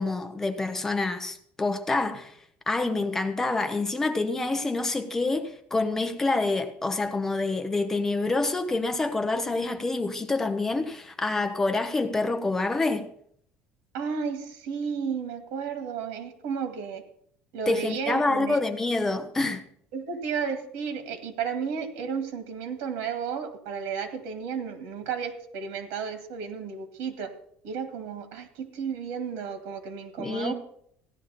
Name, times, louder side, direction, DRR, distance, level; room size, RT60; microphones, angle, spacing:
voice 1, 0.0-2.3 2.7-13.1 17.7-19.6 30.2-30.5, left 3 dB, 10° left, 0.9 m, -27 dB
voice 2, 13.9-17.0 17.5-18.6 19.9-27.3 27.6-30.5, right 6 dB, 80° right, 2.0 m, -33 dB
15.5 x 11.0 x 4.2 m
cardioid pair, 170°, 4 cm